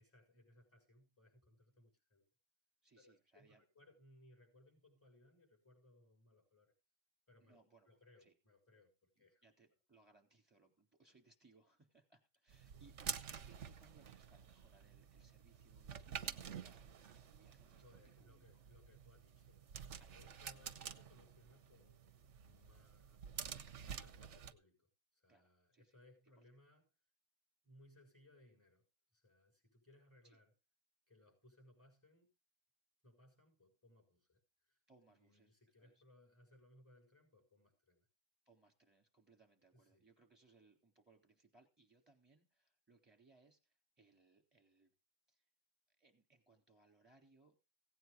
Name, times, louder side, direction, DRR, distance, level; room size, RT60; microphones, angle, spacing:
voice 1, 0.0-2.2 3.0-6.7 7.3-7.6 7.9-9.4 12.7-12.9 17.8-26.8 27.6-28.9 29.1-30.5 31.1-32.3 33.0-34.8 35.1-38.1 39.7-40.1, left 1 dB, 10° left, 6.4 m, -67 dB
voice 2, 2.8-3.6 7.4-7.9 8.2-8.3 9.2-18.7 20.0-20.4 25.3-26.0 26.2-26.4 30.2-30.4 34.9-36.0 38.4-44.9 45.3-45.4 46.0-47.5, right 3 dB, 10° right, 3.5 m, -70 dB
sound 1, 12.5-24.5, right 7 dB, 65° right, 1.2 m, -50 dB
17.0 x 9.2 x 3.9 m
omnidirectional pair, 1.3 m